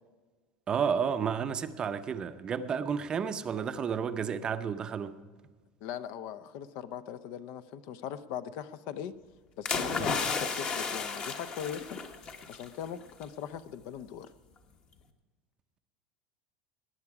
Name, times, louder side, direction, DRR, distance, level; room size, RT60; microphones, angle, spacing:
voice 1, 0.7-5.2 10.0-10.1, right 7 dB, 25° right, 0.6 m, -31 dB
voice 2, 5.8-9.1 9.6-12.0 12.5-14.3, left 9 dB, 55° left, 0.7 m, -40 dB
sound 1, 9.7-12.7 13.0-13.2, left 5 dB, 30° left, 1.1 m, -33 dB
19.0 x 9.8 x 4.8 m
supercardioid pair, 150°, 3 cm